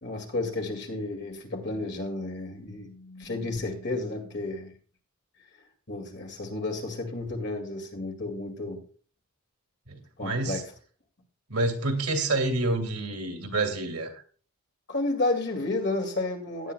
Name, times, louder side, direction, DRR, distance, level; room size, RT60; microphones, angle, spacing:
voice 1, 0.0-4.7 5.9-8.8 10.2-10.6 14.9-16.7, left 2 dB, 50° left, 2 dB, 2.2 m, -31 dB
voice 2, 9.9-10.6 11.5-14.2, right 2 dB, 90° right, 5 dB, 2.2 m, -28 dB
17.0 x 10.0 x 2.2 m, 0.40 s
head